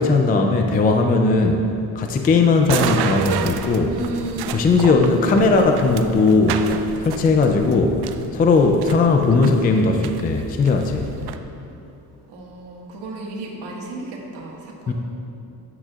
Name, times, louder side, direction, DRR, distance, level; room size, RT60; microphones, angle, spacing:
voice 1, 0.0-1.6 2.0-3.9 4.5-6.6 7.0-8.0 8.3-11.1 14.9-15.0, left 3 dB, 25° left, 4 dB, 0.3 m, -18 dB
sound 1, 2.6-11.4, right 8 dB, 70° right, 0.6 m, -31 dB
voice 2, 3.9-4.6 5.0-5.7 11.3-11.4 12.3-14.9, right 2 dB, 90° right, -2 dB, 1.7 m, -33 dB
13.5 x 9.1 x 2.4 m, 2.8 s
cardioid pair, 175°, 40 cm